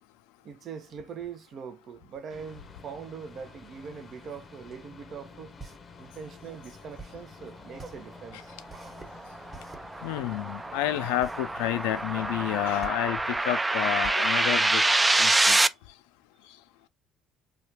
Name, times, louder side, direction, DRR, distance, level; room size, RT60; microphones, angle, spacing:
voice 1, 0.4-5.6 6.0-8.6, right 6 dB, 55° right, 0.6 m, -42 dB
sound 1, 2.3-12.9, left 4 dB, 35° left, 0.6 m, -50 dB
sound 2, 5.6-15.5, right 4 dB, 35° right, 1.2 m, -47 dB
sound 3, 8.8-15.7, right 2 dB, 15° right, 0.3 m, -26 dB
voice 2, 10.0-14.8 15.2-15.6, left 14 dB, 85° left, 0.3 m, -30 dB
3.2 x 2.3 x 2.8 m
supercardioid pair, 75°, 0 cm